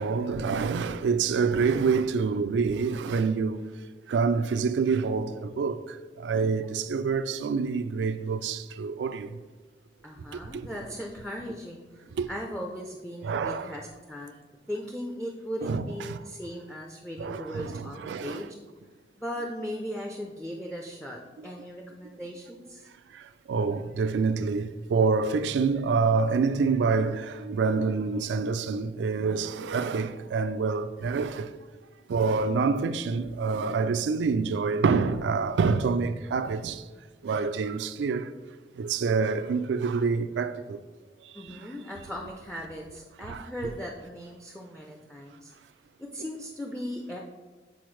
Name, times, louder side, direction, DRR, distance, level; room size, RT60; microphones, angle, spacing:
voice 1, 0.0-3.6 4.1-9.3 10.5-10.7 12.1-12.3 13.2-13.7 15.6-16.2 17.2-18.5 21.4-21.5 23.1-23.2 23.5-31.5 32.1-36.8 37.2-38.3 38.8-40.8 41.5-41.6 43.2-43.5, right 5 dB, 90° right, 0.3 m, -27 dB
voice 2, 10.0-11.8 12.3-14.3 14.7-18.5 19.2-22.9 41.3-45.5 46.0-47.2, equal, 5° left, 0.4 m, -38 dB
7.7 x 4.2 x 3.1 m
head